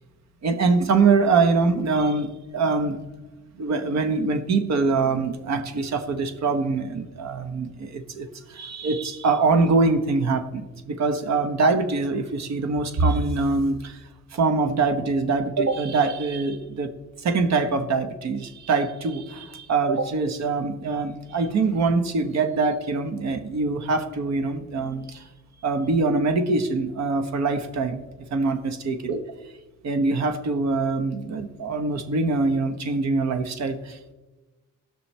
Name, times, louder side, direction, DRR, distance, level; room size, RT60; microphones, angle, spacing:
voice 1, 0.4-3.0 3.6-16.9 17.2-25.2 25.6-28.0 28.3-29.2 29.8-34.1, right 3 dB, 60° right, 9 dB, 1.2 m, -24 dB
18.0 x 6.2 x 3.3 m, 1.2 s
cardioid pair, 90°, 30 cm